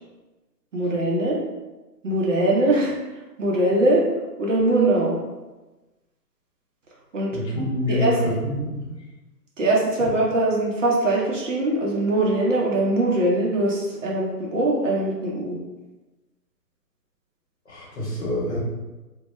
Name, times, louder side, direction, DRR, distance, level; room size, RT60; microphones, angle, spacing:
voice 1, 0.7-1.4 2.0-2.9 3.4-4.1 4.4-5.2 7.1-7.3 7.9-8.4 9.6-15.6, right 1 dB, 50° right, -3 dB, 0.6 m, -21 dB
voice 2, 7.3-8.9 17.7-18.6, left 1 dB, 40° left, -6 dB, 0.9 m, -26 dB
2.2 x 2.0 x 2.9 m, 1.1 s
figure-of-eight pair, 145°, 49 cm